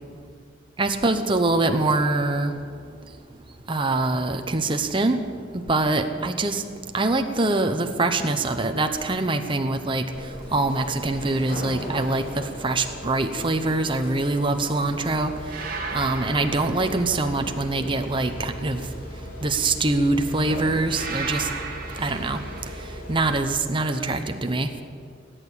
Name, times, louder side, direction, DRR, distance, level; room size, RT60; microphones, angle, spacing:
voice 1, 0.8-2.6 3.7-5.2 5.5-6.6 6.9-10.1 10.5-15.3 15.9-18.9 19.4-21.5 22.0-22.4 23.1-24.7, right 2 dB, 25° right, 6 dB, 0.9 m, -24 dB
sound 1, 10.1-23.4, equal, 45° left, 3.4 m, -38 dB
sound 2, 11.3-11.7 15.5-17.6 20.9-22.9, right 4 dB, 50° right, 1.6 m, -35 dB
18.5 x 9.1 x 8.4 m, 2.1 s
head